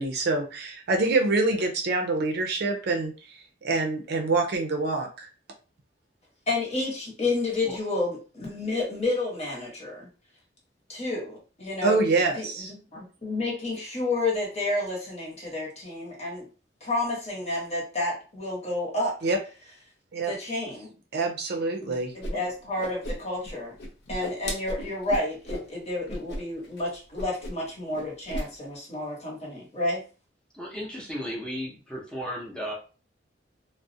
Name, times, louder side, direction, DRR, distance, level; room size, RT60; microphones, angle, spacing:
voice 1, 0.0-5.3 11.8-12.7 19.2-19.4 20.1-20.3 21.1-22.1, right 3 dB, 60° right, 3 dB, 0.5 m, -26 dB
voice 2, 6.5-10.1 10.9-12.0 12.4-16.5 16.8-19.1 20.2-20.9 21.8-23.8 24.1-30.0, left 2 dB, 35° left, -3 dB, 1.0 m, -30 dB
Whoosh swoosh swish, 22.2-22.3 22.6-23.5 23.8-25.7 26.1-26.4 26.6-26.8 27.1-27.7 27.9-28.5, left 1 dB, 65° left, 0.6 m, -34 dB
voice 3, 30.5-32.8, equal, 5° left, -3 dB, 0.7 m, -35 dB
2.3 x 2.0 x 2.7 m, 0.35 s
head